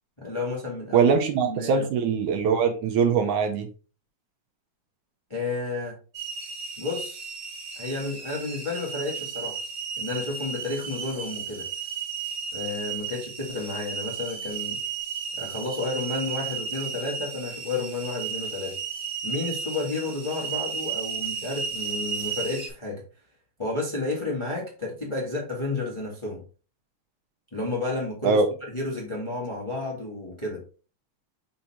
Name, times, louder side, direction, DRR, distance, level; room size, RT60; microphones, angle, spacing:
voice 1, 0.2-1.1 1.4-1.8 5.3-6.0 6.8-7.4 7.7-9.6 10.0-11.7 12.5-14.8 15.4-18.8 19.2-23.0 23.6-26.4 27.5-30.6, left 3 dB, 15° left, -3 dB, 1.2 m, -31 dB
voice 2, 0.9-3.7 28.2-28.5, right 5 dB, 75° right, 6 dB, 2.2 m, -22 dB
sound 1, 6.1-22.7, right 6 dB, 55° right, 2.7 m, -34 dB
5.6 x 4.1 x 4.2 m, 0.36 s
omnidirectional pair, 3.7 m